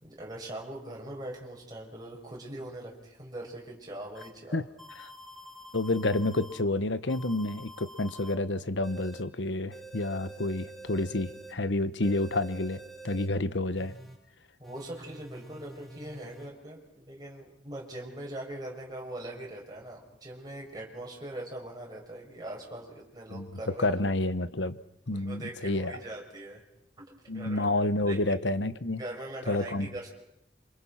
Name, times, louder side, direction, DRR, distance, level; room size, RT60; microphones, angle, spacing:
voice 1, 0.0-4.6 14.6-23.9 25.1-26.6 27.0-27.7 28.1-28.2 29.0-30.1, right 1 dB, 20° right, 6.1 m, -41 dB
sound 1, 4.2-4.3 4.8-6.6 7.1-8.3 8.8-9.2 9.7-11.5 12.0-13.3 13.8-14.1 14.6-16.5, right 1 dB, ahead, 3.9 m, -48 dB
voice 2, 5.7-13.9 23.3-23.5 23.8-24.8 25.1-25.9 27.3-29.0 29.5-29.9, left 2 dB, 85° left, 1.2 m, -29 dB
28.5 x 26.0 x 5.9 m
head